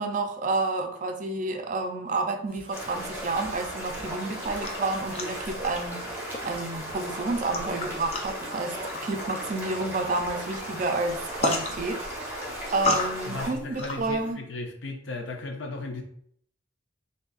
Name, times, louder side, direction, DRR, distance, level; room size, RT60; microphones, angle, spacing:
voice 1, 0.0-6.2 6.4-12.4 12.7-14.4, right 3 dB, 45° right, 0.4 m, -30 dB
sound 1, 2.5-14.3, left 2 dB, 35° left, 0.4 m, -36 dB
sound 2, 2.7-13.5, right 1 dB, 10° right, 0.9 m, -36 dB
voice 2, 13.3-16.0, left 3 dB, 85° left, 0.6 m, -36 dB
3.9 x 2.7 x 2.4 m
head